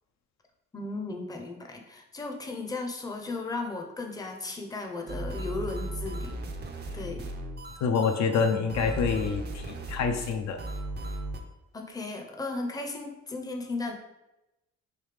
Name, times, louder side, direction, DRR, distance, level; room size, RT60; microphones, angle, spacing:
voice 1, 0.7-6.4 6.9-7.3 11.7-13.9, left 3 dB, 10° left, 2 dB, 0.5 m, -35 dB
sound 1, 5.1-11.4, right 1 dB, 35° right, 0.5 m, -36 dB
voice 2, 7.8-10.6, left 5 dB, 65° left, 4 dB, 0.4 m, -27 dB
3.3 x 2.7 x 3.3 m, 0.93 s
cardioid pair, 90°, 30 cm